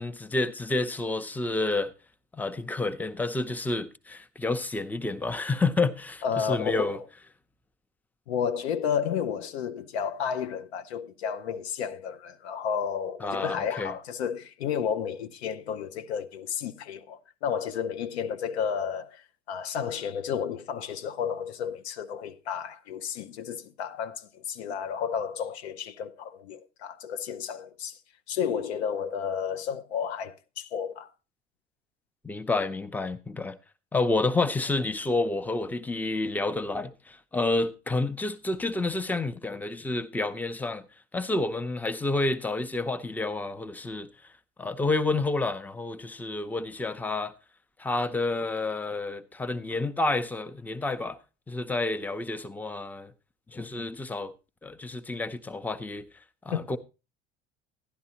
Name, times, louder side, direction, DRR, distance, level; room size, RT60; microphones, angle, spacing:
voice 1, 0.0-1.9 2.3-7.0 13.2-13.9 32.2-33.6 33.9-40.8 41.1-44.1 44.6-47.3 47.8-51.2 51.5-53.1 53.5-54.3 54.6-56.1 56.4-56.8, left 2 dB, 5° left, 0.6 m, -29 dB
voice 2, 6.2-7.1 8.3-28.0 28.3-31.1 56.5-56.7, left 7 dB, 75° left, 0.7 m, -32 dB
11.5 x 11.0 x 2.8 m
figure-of-eight pair, 65°, 32 cm